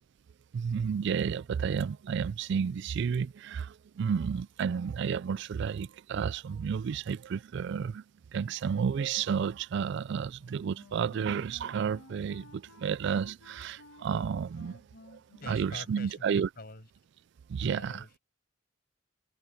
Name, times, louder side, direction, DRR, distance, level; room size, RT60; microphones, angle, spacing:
voice 1, 0.5-8.0 8.3-14.8 15.1-15.2 15.5-16.5 17.5-18.0, right 7 dB, 60° right, 0.3 m, -31 dB
Wind instrument woodwind instrument, 10.4-16.3, left 2 dB, 75° left, 1.7 m, -55 dB
voice 2, 15.4-16.9 17.6-18.2, left 2 dB, 50° left, 6.3 m, -46 dB
head